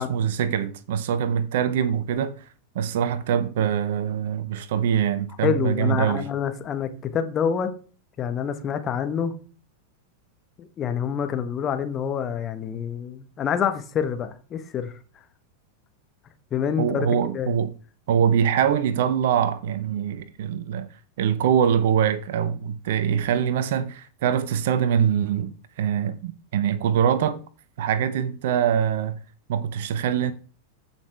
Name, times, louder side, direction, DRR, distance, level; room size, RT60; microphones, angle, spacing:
voice 1, 0.0-2.4 2.7-6.3 16.8-17.7 18.1-20.9 21.2-27.4 27.8-29.2 29.5-30.3, right 8 dB, 55° right, 0.8 m, -23 dB
voice 2, 5.4-7.7 8.2-9.3 10.6-14.9 16.5-17.1 17.3-17.5, left 8 dB, 25° left, 1.3 m, -27 dB
14.5 x 5.8 x 3.5 m
figure-of-eight pair, 90°, 0 cm